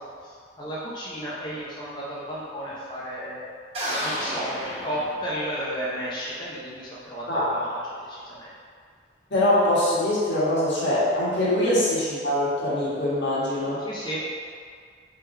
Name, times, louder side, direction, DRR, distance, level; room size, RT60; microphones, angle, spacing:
voice 1, 0.0-3.4 3.9-7.8 8.1-8.5 13.8-14.2, equal, 25° left, -8 dB, 0.6 m, -33 dB
sound 1, 3.7-5.7, equal, 30° right, 0.8 m, -31 dB
voice 2, 9.3-13.8, left 1 dB, 80° left, -9 dB, 1.5 m, -23 dB
3.6 x 3.4 x 4.4 m, 2.1 s
head